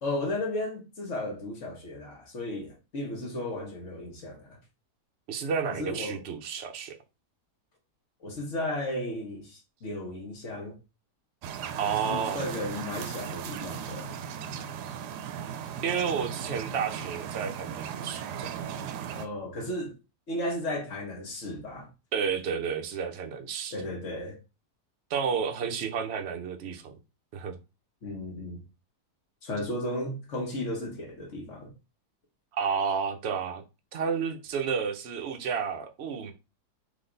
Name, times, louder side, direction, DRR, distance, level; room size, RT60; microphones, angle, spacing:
voice 1, 0.0-4.6 5.7-6.2 8.2-10.8 12.0-14.1 19.1-19.9 20.3-21.9 23.7-24.4 28.0-28.6 29.4-31.7, left 1 dB, 45° left, 1.5 m, -34 dB
voice 2, 5.3-6.9 11.8-12.4 15.8-18.5 22.1-23.8 25.1-27.0 27.3-27.6 32.5-33.6 33.9-36.3, right 6 dB, 55° right, 0.8 m, -31 dB
sound 1, 11.4-19.3, right 8 dB, 75° right, 1.1 m, -37 dB
4.0 x 3.3 x 3.8 m
omnidirectional pair, 1.8 m